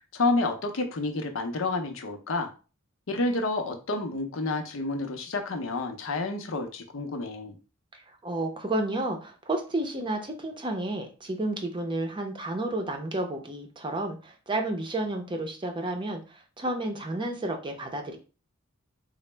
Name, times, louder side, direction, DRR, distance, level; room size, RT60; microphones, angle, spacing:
voice 1, 0.1-2.5 3.1-7.5, left 2 dB, 70° left, 5 dB, 0.6 m, -29 dB
voice 2, 7.9-18.2, right 1 dB, 25° right, 4 dB, 0.6 m, -31 dB
3.8 x 2.0 x 3.3 m, 0.34 s
head